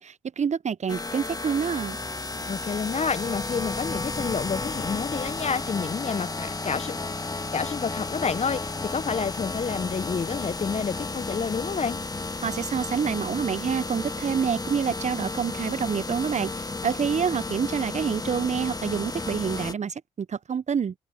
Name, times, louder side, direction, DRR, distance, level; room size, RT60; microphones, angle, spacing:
voice 1, 0.0-2.0 12.4-16.5 16.8-20.9, right 7 dB, 40° right, 1.1 m, -27 dB
sound 1, 0.9-19.7, left 3 dB, 20° left, 2.1 m, -33 dB
voice 2, 2.5-7.0 7.5-12.0, left 5 dB, 35° left, 1.4 m, -29 dB
figure-of-eight pair, 40°, 18 cm